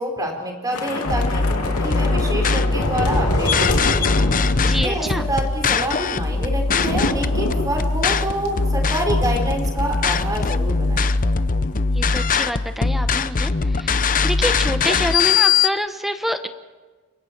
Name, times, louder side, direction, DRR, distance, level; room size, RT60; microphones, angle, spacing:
voice 1, 0.0-11.1, right 1 dB, 15° right, 2 dB, 4.5 m, -27 dB
Thunder / Rain, 0.7-9.3 9.6-9.8 10.1-10.4, left 1 dB, 85° left, 2.8 m, -26 dB
sound 1, 1.0-15.7, left 4 dB, 40° left, 0.7 m, -21 dB
voice 2, 4.7-5.3 11.9-16.5, equal, ahead, 8 dB, 1.0 m, -27 dB
29.5 x 24.0 x 4.6 m, 1.3 s
head